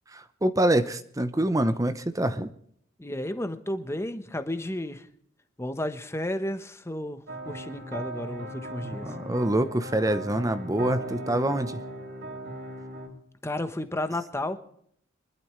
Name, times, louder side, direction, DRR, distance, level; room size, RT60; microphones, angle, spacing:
voice 1, 0.1-2.5 8.8-11.8, right 1 dB, 15° right, 11 dB, 0.7 m, -26 dB
voice 2, 3.0-5.1 5.6-7.2 7.4-9.1 13.4-14.6, left 1 dB, 15° left, 9 dB, 1.0 m, -32 dB
sound 1, 7.3-13.1, right 1 dB, 60° right, 3.7 m, -38 dB
24.5 x 12.0 x 3.2 m, 0.66 s
head